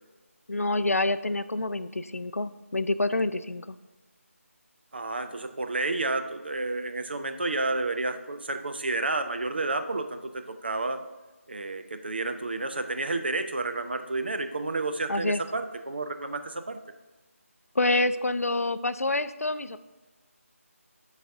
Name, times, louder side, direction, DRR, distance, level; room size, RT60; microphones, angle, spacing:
voice 1, 0.5-3.8 15.1-15.4 17.7-19.8, left 2 dB, 80° left, 12 dB, 0.4 m, -27 dB
voice 2, 4.9-11.0 11.5-16.8, right 2 dB, 45° right, 7 dB, 0.5 m, -30 dB
11.5 x 4.0 x 2.6 m, 1.2 s
figure-of-eight pair, 160°, 8 cm